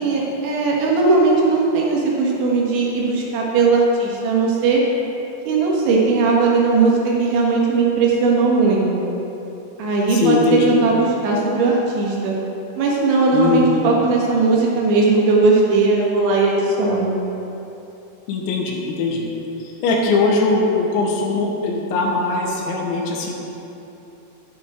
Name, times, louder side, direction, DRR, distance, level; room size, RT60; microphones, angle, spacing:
voice 1, 0.0-4.8 5.5-9.1 9.8-12.4 12.8-17.2, right 3 dB, 80° right, -3 dB, 3.9 m, -18 dB
voice 2, 10.1-10.8 13.3-13.8 18.3-19.3 19.6-23.4, left 3 dB, 85° left, 0 dB, 3.5 m, -20 dB
11.0 x 10.0 x 3.6 m, 3.0 s
omnidirectional pair, 5.2 m